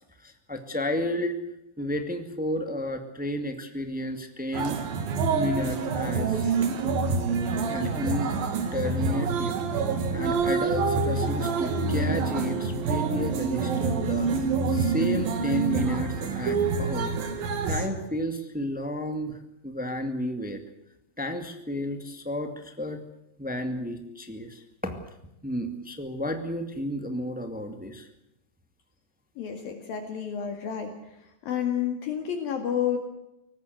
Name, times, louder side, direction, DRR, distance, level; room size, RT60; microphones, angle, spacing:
voice 1, 0.2-1.4 1.8-4.8 5.3-6.6 7.6-8.3 8.7-9.5 10.1-17.1 17.7-19.4 19.6-20.6 21.2-23.0 23.4-25.0 25.4-28.1, equal, 5° right, 6 dB, 0.7 m, -32 dB
sound 1, 4.5-17.9, right 4 dB, 60° right, 3.9 m, -27 dB
voice 2, 29.4-30.9 31.4-33.0, left 9 dB, 60° left, 5 dB, 3.7 m, -30 dB
24.0 x 19.5 x 7.9 m, 0.85 s
omnidirectional pair, 4.8 m